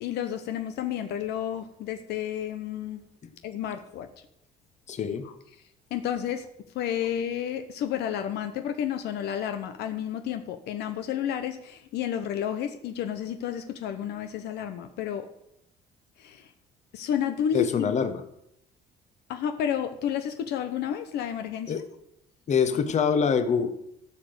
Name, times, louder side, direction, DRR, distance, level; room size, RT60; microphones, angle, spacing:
voice 1, 0.0-3.0 3.4-4.1 5.9-6.5 6.7-15.3 16.2-16.5 16.9-17.9 19.3-21.8, left 9 dB, 75° left, 8 dB, 0.9 m, -31 dB
voice 2, 4.9-5.3 17.5-18.2 21.7-21.9 22.5-23.7, left 6 dB, 45° left, 10 dB, 1.3 m, -25 dB
14.0 x 5.1 x 8.0 m, 0.78 s
cardioid pair, 110°, 17 cm